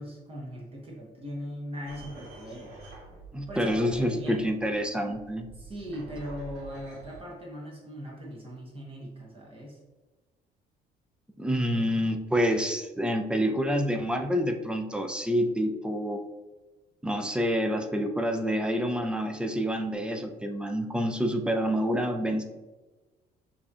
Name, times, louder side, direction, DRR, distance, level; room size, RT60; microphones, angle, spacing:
voice 1, 0.0-2.7 3.5-4.5 5.5-9.8, equal, 35° right, -3 dB, 1.0 m, -39 dB
sound 1, 1.9-7.2, right 1 dB, 85° right, 1.3 m, -48 dB
voice 2, 3.3-5.5 11.4-16.2 17.0-22.4, equal, 5° right, 4 dB, 0.4 m, -27 dB
6.1 x 2.8 x 2.4 m, 1.2 s
cardioid pair, 110°, 17 cm